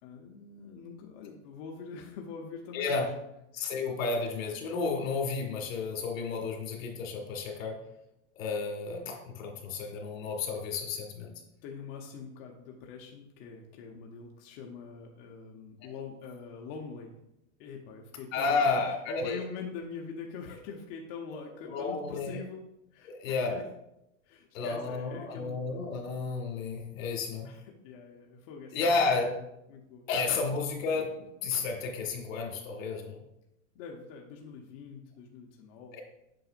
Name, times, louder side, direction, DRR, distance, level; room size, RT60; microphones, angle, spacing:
voice 1, 0.0-3.0 3.6-3.7 11.3-17.1 17.6-22.6 22.9-23.6 24.2-25.8 27.4-28.9 29.7-30.1 33.7-36.0, left 5 dB, 45° left, 0 dB, 0.9 m, -44 dB
voice 2, 2.7-3.1 3.5-7.8 8.4-11.3 15.8-15.9 18.3-19.4 21.6-22.4 23.1-23.6 24.5-27.5 28.7-29.4 30.1-33.2, left 4 dB, 80° left, 2 dB, 1.9 m, -32 dB
7.6 x 6.0 x 2.5 m, 0.85 s
supercardioid pair, 150°, 39 cm